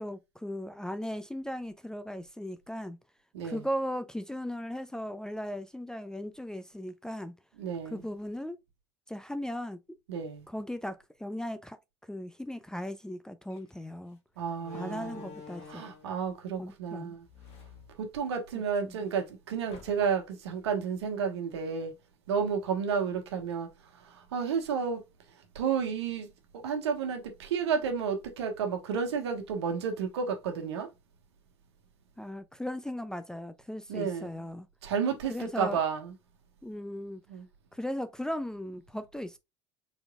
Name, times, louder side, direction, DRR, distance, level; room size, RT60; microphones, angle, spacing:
voice 1, 0.0-3.0 3.4-7.3 7.9-8.6 9.1-9.8 10.5-11.8 12.1-14.2 14.7-15.9 16.6-17.2 18.8-19.0 32.2-34.7 35.3-35.8 36.6-37.2 37.7-39.4, equal, 5° left, 0.5 m, -37 dB
voice 2, 7.6-8.0 10.1-10.5 14.4-15.3 15.7-17.2 18.0-21.9 22.3-23.7 24.0-25.0 25.5-26.3 26.5-30.9 33.9-34.3 34.8-36.1 37.3-37.4, right 6 dB, 70° right, 1.3 m, -31 dB
Slam, 13.5-13.7 14.6-16.1 17.2-18.6 19.0-19.1 19.7-20.3, left 5 dB, 45° left, 1.4 m, -49 dB
4.8 x 4.1 x 2.3 m
figure-of-eight pair, 70°, 14 cm